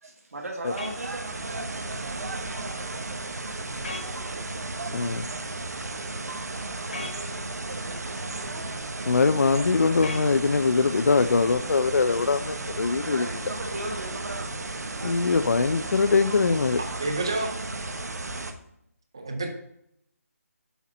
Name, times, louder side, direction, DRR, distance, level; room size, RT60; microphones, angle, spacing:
voice 1, 0.0-3.3 3.9-4.5 6.5-8.7 13.0-14.7, right 2 dB, 70° right, -1 dB, 1.3 m, -39 dB
sound 1, 0.6-18.5, right 2 dB, 85° right, 1.0 m, -34 dB
sound 2, 0.8-1.0 3.8-4.1 6.9-7.2 10.0-10.3, left 2 dB, 40° left, 0.8 m, -35 dB
voice 2, 4.9-5.3 9.1-13.3 15.0-16.8, left 4 dB, 70° left, 11 dB, 0.4 m, -22 dB
voice 3, 17.0-17.5 19.1-19.5, right 2 dB, 15° right, 4 dB, 0.5 m, -28 dB
7.1 x 4.2 x 4.9 m, 0.76 s
hypercardioid pair, 180°, 9 cm